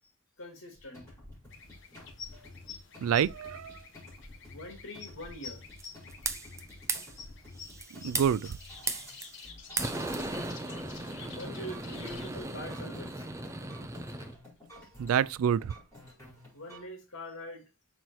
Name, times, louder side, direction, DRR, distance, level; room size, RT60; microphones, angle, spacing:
voice 1, 0.4-1.0 4.5-5.6 10.7-11.0 11.3-13.2 16.5-17.7, left 1 dB, 90° left, 2.4 m, -44 dB
sound 1, 0.8-16.9, left 1 dB, 10° left, 4.5 m, -51 dB
sound 2, 1.5-12.3, left 6 dB, 60° left, 1.2 m, -50 dB
voice 2, 3.0-3.8 8.0-8.6 15.0-15.7, right 8 dB, 85° right, 0.3 m, -27 dB
sound 3, 5.8-6.6 6.9-7.1 7.6-9.5 9.8-14.3, right 3 dB, 15° right, 0.6 m, -37 dB
6.2 x 4.2 x 4.6 m
head